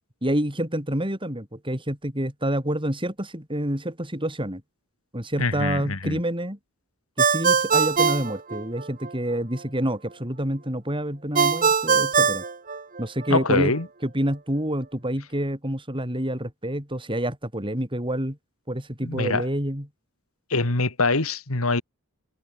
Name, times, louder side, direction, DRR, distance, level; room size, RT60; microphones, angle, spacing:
voice 1, 0.2-4.6 5.1-6.6 7.2-12.4 13.0-13.7 14.0-18.4 18.7-19.9, right 1 dB, 25° right, 7.7 m, -28 dB
voice 2, 5.4-6.2 13.3-13.9 19.0-19.5 20.5-21.8, left 3 dB, 70° left, 2.2 m, -24 dB
Ringtone, 7.2-9.1 11.4-13.3, right 6 dB, 40° right, 2.1 m, -22 dB
head